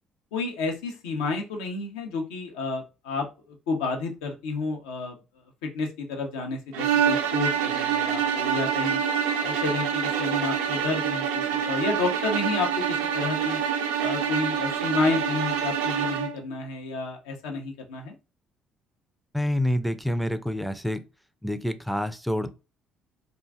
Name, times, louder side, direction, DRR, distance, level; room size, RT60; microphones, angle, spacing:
voice 1, 0.3-3.3 3.7-5.2 5.6-9.0 9.4-12.8 13.1-13.6 14.0-18.1, left 3 dB, 75° left, 0.6 m, -30 dB
sound 1, 6.7-16.4, right 8 dB, 70° right, 0.4 m, -26 dB
voice 2, 19.3-21.0 21.4-22.5, left 1 dB, ahead, 0.4 m, -27 dB
2.5 x 2.2 x 3.4 m
hypercardioid pair, 50°, 3 cm